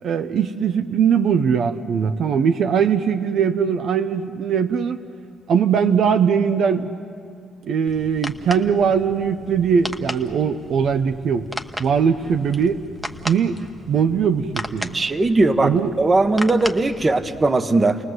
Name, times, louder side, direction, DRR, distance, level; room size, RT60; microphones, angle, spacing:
voice 1, 0.0-5.0 5.5-6.9 7.6-11.5 11.8-12.8 13.3-13.6 13.9-15.0 15.6-16.0, right 7 dB, 65° right, 8 dB, 0.7 m, -20 dB
sound 1, 7.9-17.5, equal, 5° right, 1.1 m, -36 dB
voice 2, 14.9-18.0, right 2 dB, 25° right, 9 dB, 1.1 m, -19 dB
30.0 x 19.0 x 7.9 m, 2.4 s
cardioid pair, 90°, 0 cm